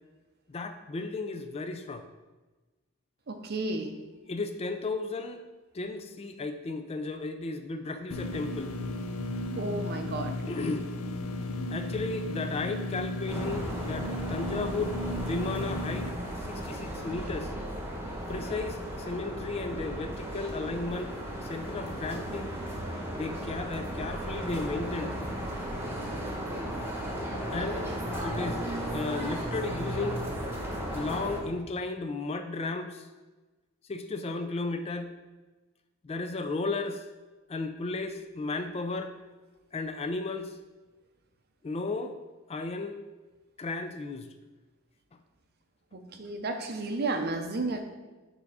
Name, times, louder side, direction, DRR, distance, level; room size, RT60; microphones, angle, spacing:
voice 1, 0.5-2.0 4.3-5.4 5.7-8.7 10.5-10.9 11.7-16.1 16.5-17.5 18.3-21.1 21.4-22.5 23.1-25.2 27.5-27.9 28.2-28.6 28.9-30.2 30.9-33.1 33.9-35.1 36.0-37.0 37.5-39.1 39.7-40.6 41.6-42.2 42.5-43.0 43.6-44.3, left 3 dB, 30° left, 7 dB, 0.3 m, -34 dB
voice 2, 3.3-3.9 9.5-10.4 45.9-47.8, right 2 dB, 45° right, 6 dB, 0.6 m, -32 dB
sound 1, 8.1-16.1, left 1 dB, 80° left, 0.5 m, -35 dB
sound 2, 13.3-31.4, equal, 10° right, 1.0 m, -35 dB
7.1 x 3.5 x 4.8 m, 1.2 s
head